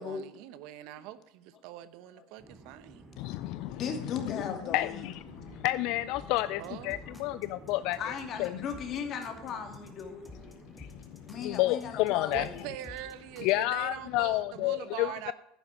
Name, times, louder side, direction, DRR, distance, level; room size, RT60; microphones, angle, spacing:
voice 1, 0.0-3.1 6.6-6.9 12.3-15.3, right 12 dB, 65° right, 0.9 m, -43 dB
sound 1, 2.4-14.5, right 2 dB, 35° right, 3.4 m, -53 dB
voice 2, 3.2-3.8 4.1-4.4 4.7-8.0 8.4-8.6 10.8-12.5 13.4-15.3, left 17 dB, 60° left, 0.4 m, -30 dB
voice 3, 3.7-5.1 7.8-10.2 11.3-12.7, left 6 dB, 45° left, 2.5 m, -37 dB
sound 2, 6.1-13.6, left 2 dB, 10° left, 2.3 m, -52 dB
11.0 x 9.6 x 5.0 m
hypercardioid pair, 90°, 0 cm